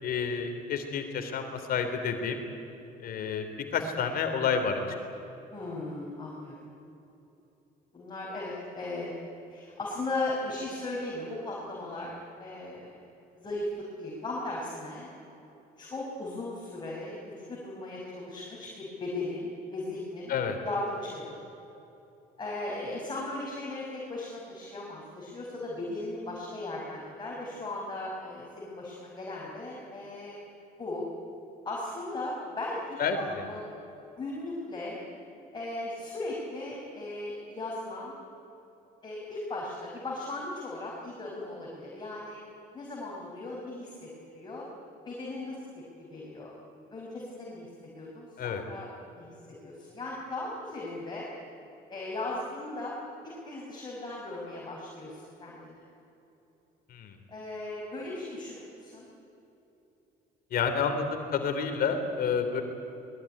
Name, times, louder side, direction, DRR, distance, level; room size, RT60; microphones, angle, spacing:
voice 1, 0.0-2.4 3.0-3.5 3.7-4.8 20.3-20.6 33.0-33.4 48.4-48.6 56.9-57.1 60.5-62.6, left 6 dB, 60° left, 6 dB, 3.2 m, -29 dB
voice 2, 5.5-6.6 7.9-9.1 9.5-13.0 13.4-15.1 15.8-20.4 20.6-21.4 22.4-30.4 30.8-31.1 31.6-33.7 34.2-35.0 35.5-38.1 39.0-42.4 42.7-44.7 45.1-45.8 46.1-46.5 46.9-48.9 49.1-51.3 51.9-52.9 53.2-55.8 57.3-59.1, left 2 dB, 25° left, -4 dB, 5.6 m, -37 dB
22.5 x 21.0 x 9.9 m, 2.9 s
cardioid pair, 110°, 17 cm